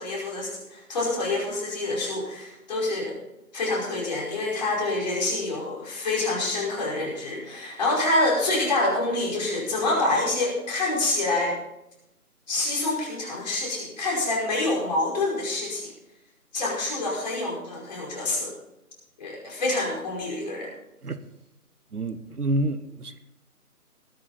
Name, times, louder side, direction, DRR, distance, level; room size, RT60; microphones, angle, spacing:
voice 1, 0.0-3.1 3.5-11.6 12.5-15.9 16.5-18.5 19.2-20.7, left 2 dB, 25° left, 5.2 m, -27 dB
voice 2, 21.9-23.2, right 1 dB, 75° right, 1.2 m, -28 dB
20.5 x 8.4 x 4.3 m
figure-of-eight pair, 155°, 46 cm